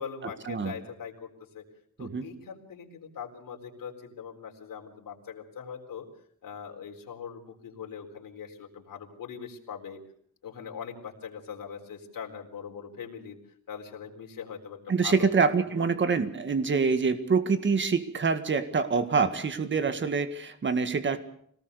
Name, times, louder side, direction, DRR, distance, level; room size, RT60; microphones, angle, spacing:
voice 1, 0.0-1.6 2.0-6.1 6.4-10.0 10.4-13.4 13.7-15.3 15.8-15.9 19.8-20.0, left 7 dB, 90° left, 1 dB, 4.2 m, -41 dB
voice 2, 14.9-21.2, right 5 dB, 35° right, 10 dB, 1.8 m, -26 dB
25.5 x 19.0 x 6.8 m, 0.64 s
wide cardioid pair, 155°, 33 cm